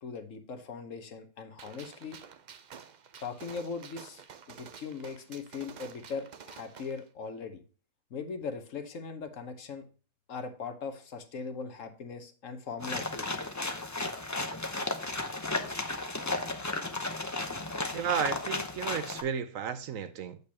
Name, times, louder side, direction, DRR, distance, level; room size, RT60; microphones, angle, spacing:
voice 1, 0.0-2.2 3.2-4.2 4.6-7.6 8.1-9.8 10.3-13.3, left 5 dB, 60° left, 1.3 m, -39 dB
Gunshot gunfire, 1.6-7.0, right 7 dB, 85° right, 0.4 m, -50 dB
sound 1, 12.8-19.2, left 2 dB, 20° left, 0.5 m, -34 dB
voice 2, 17.9-20.4, right 7 dB, 65° right, 1.0 m, -33 dB
8.3 x 6.7 x 2.9 m
omnidirectional pair, 1.6 m